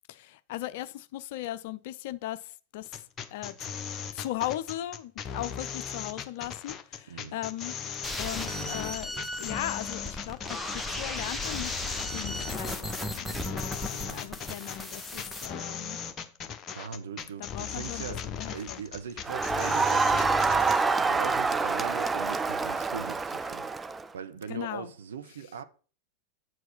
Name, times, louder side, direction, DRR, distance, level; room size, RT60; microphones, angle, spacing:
voice 1, 0.1-3.0 3.3-3.6 4.1-7.8 8.2-11.9 12.1-16.0 17.4-18.8 24.5-24.9, left 14 dB, 50° left, 0.5 m, -38 dB
sound 1, 2.9-20.8, left 6 dB, 25° left, 1.0 m, -38 dB
voice 2, 7.1-7.4 13.9-14.3 16.7-20.4 21.0-23.7 24.1-25.6, right 7 dB, 65° right, 0.9 m, -40 dB
sound 2, 8.0-15.5, left 1 dB, 5° left, 1.1 m, -36 dB
Crowd, 19.2-24.1, right 4 dB, 15° right, 0.4 m, -26 dB
7.9 x 4.7 x 5.9 m
figure-of-eight pair, 90°, 0 cm